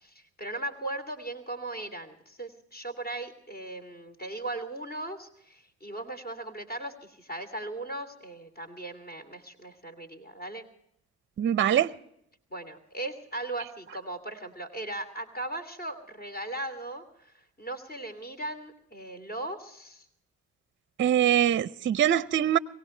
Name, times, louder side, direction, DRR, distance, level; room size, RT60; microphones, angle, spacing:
voice 1, 0.0-10.6 12.5-20.1, right 2 dB, 30° left, 2.9 m, -38 dB
voice 2, 11.4-11.9 21.0-22.6, right 10 dB, 40° right, 0.6 m, -23 dB
23.0 x 18.0 x 3.2 m
cardioid pair, 90°, 30 cm